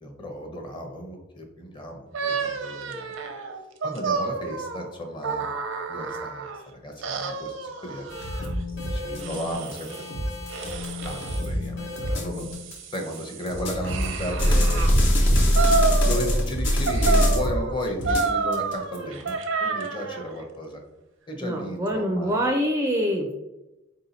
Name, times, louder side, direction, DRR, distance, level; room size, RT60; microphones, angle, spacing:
voice 1, 0.0-3.1 3.8-8.1 8.4-10.1 10.8-12.5 12.9-14.8 15.4-20.8 21.3-22.4, equal, 25° left, 3 dB, 0.7 m, -35 dB
sound 1, 2.1-6.6 7.0-8.5 9.2-10.1 10.5-11.5 12.1-14.9 15.5-16.5 16.9-20.3, right 4 dB, 85° right, 0.6 m, -29 dB
sound 2, 8.1-13.0 13.5-17.6 18.0-19.3, equal, 70° left, 1.0 m, -24 dB
voice 2, 21.4-23.3, equal, 15° right, 2 dB, 0.4 m, -25 dB
4.5 x 2.7 x 4.0 m, 1.0 s
head